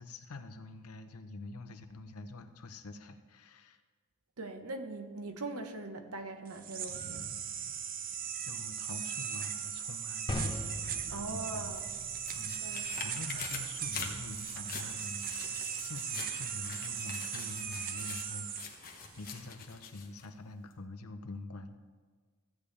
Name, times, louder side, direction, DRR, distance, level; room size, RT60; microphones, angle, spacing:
voice 1, 0.0-3.8 8.4-11.7 12.4-21.8, left 2 dB, 70° left, 7 dB, 0.7 m, -46 dB
voice 2, 4.4-7.3 11.1-11.8 12.6-12.9, right 2 dB, 70° right, 7 dB, 1.0 m, -41 dB
sound 1, 6.5-19.3, right 8 dB, 40° right, 0.6 m, -38 dB
sound 2, 10.3-16.4, left 1 dB, 20° left, 0.8 m, -44 dB
sound 3, 11.5-20.3 20.7-20.8, left 6 dB, 40° left, 1.1 m, -45 dB
14.5 x 8.5 x 3.3 m, 1.5 s
head